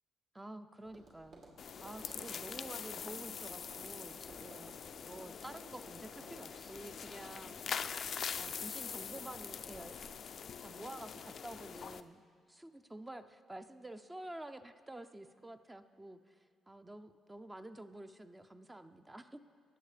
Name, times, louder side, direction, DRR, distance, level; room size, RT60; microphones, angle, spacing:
voice 1, 0.3-1.4 1.8-4.8 5.1-7.6 8.4-10.0 10.6-12.2 12.5-19.4, right 1 dB, 15° right, 9 dB, 0.5 m, -49 dB
Tap, 0.8-10.1, right 2 dB, 60° right, 2.5 m, -58 dB
sound 1, 1.6-12.0, left 7 dB, 55° left, 0.4 m, -44 dB
19.5 x 7.7 x 3.3 m, 2.1 s
cardioid pair, 90°, 0 cm